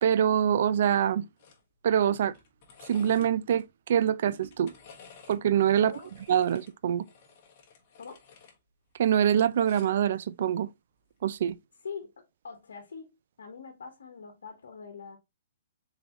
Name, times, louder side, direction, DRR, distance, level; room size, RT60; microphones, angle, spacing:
voice 1, 0.0-1.2 1.8-2.3 2.9-4.7 5.3-5.9 6.3-7.0 9.0-10.7 11.2-11.6, right 9 dB, 60° right, 0.3 m, -24 dB
sound 1, 1.4-1.6 1.9-3.6 4.3-5.4 5.8-8.6 8.9-10.0 11.2-11.4, left 6 dB, 40° left, 1.3 m, -54 dB
voice 2, 11.8-13.1 13.4-15.2, left 5 dB, 90° left, 1.0 m, -43 dB
4.0 x 3.3 x 2.9 m
hypercardioid pair, 155°, 0 cm